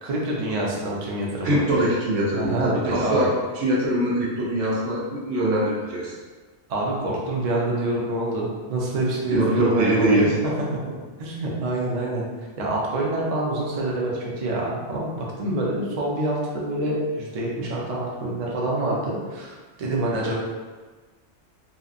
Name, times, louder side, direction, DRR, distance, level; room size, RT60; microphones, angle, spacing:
voice 1, 0.0-1.6 2.3-3.3 6.7-10.3 10.7-10.8 11.2-12.3 12.6-20.3, right 1 dB, 50° right, -3 dB, 0.4 m, -26 dB
voice 2, 1.4-6.2 9.3-10.4, right 1 dB, 85° right, -4 dB, 1.0 m, -22 dB
2.8 x 2.4 x 2.4 m, 1.3 s
omnidirectional pair, 1.2 m